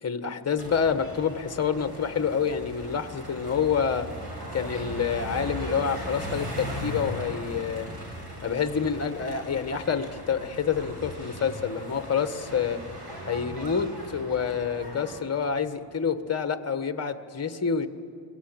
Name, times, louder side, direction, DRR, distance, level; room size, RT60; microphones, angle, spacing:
voice 1, 0.0-4.1 4.5-7.9 8.4-12.8 13.2-17.9, left 6 dB, 30° left, 10 dB, 1.3 m, -28 dB
sound 1, 0.6-15.2, equal, 50° right, 6.6 m, -38 dB
25.0 x 23.0 x 8.9 m, 2.4 s
wide cardioid pair, 145°, 47 cm